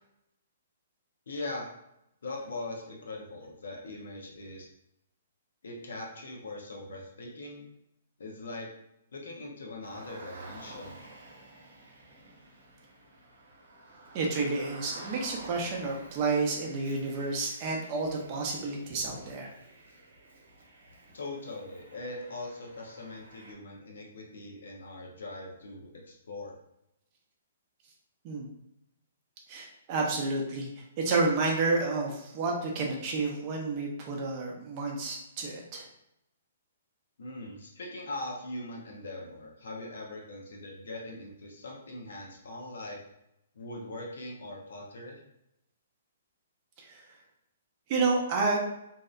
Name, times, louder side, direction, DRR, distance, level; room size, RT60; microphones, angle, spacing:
voice 1, 1.3-1.7 2.2-4.7 5.6-7.7 8.2-8.7 9.1-11.0 21.1-26.5 37.2-43.0 43.5-45.2, left 2 dB, 80° left, -1 dB, 0.6 m, -41 dB
Car, 9.8-23.5, right 2 dB, 75° right, 0.8 m, -50 dB
voice 2, 14.1-19.5 28.2-28.5 29.5-35.9 46.8-47.0 47.9-48.6, right 3 dB, 30° right, 0 dB, 0.6 m, -30 dB
2.7 x 2.1 x 2.4 m, 0.82 s
hypercardioid pair, 155°, 0 cm